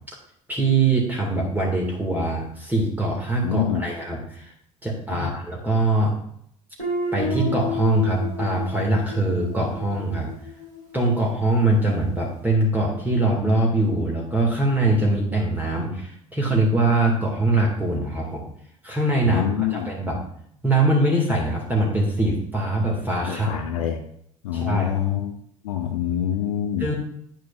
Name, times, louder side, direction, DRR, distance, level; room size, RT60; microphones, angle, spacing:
voice 1, 0.5-4.5 4.8-6.2 7.1-10.3 10.9-18.5 18.8-19.4 19.7-20.2 20.6-23.6 24.5-25.0 26.8-26.9, right 2 dB, 10° right, -2 dB, 2.3 m, -22 dB
voice 2, 3.4-3.9 5.1-5.3 19.2-19.9 21.8-22.0 23.3-24.0 24.4-25.4 25.6-26.9, left 10 dB, 70° left, 4 dB, 0.8 m, -26 dB
Guitar, 6.8-11.5, left 3 dB, 90° right, 3.3 m, -31 dB
10.0 x 9.0 x 2.6 m, 0.68 s
figure-of-eight pair, 60°, 18 cm